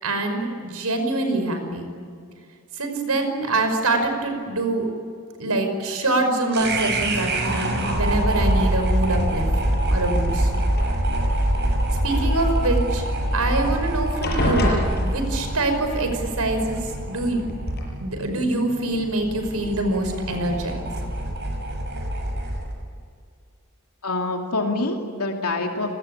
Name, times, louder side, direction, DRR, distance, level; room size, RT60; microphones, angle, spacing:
voice 1, 0.0-1.9 2.8-4.9 5.4-9.5 9.9-10.5 12.0-13.0 13.3-17.4 18.0-20.8, right 2 dB, 85° right, 6 dB, 5.3 m, -24 dB
sound 1, 6.5-22.7, right 1 dB, 50° right, 6.3 m, -25 dB
sound 2, 9.2-9.8 10.6-11.5 13.3-13.4 13.7-13.9 14.2-15.7 16.8-16.9 17.4-17.8, left 1 dB, 45° left, 6.6 m, -26 dB
voice 2, 24.0-25.9, left 2 dB, 80° left, 2 dB, 2.7 m, -26 dB
30.0 x 20.5 x 8.9 m, 2.2 s
head